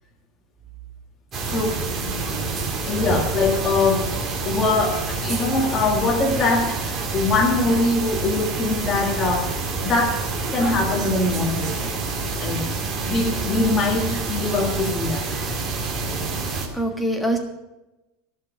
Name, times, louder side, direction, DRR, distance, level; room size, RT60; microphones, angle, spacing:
sound 1, 1.3-16.7, right 3 dB, 20° right, 2.3 m, -27 dB
voice 1, 1.5-1.8 2.9-4.1 4.4-10.2 10.5-11.9 12.4-12.7 13.1-15.3, left 3 dB, 20° left, 0 dB, 1.7 m, -22 dB
voice 2, 15.3-15.6 16.7-17.4, right 1 dB, ahead, 1 dB, 1.5 m, -26 dB
15.5 x 5.9 x 9.5 m, 0.97 s
supercardioid pair, 175°, 0 cm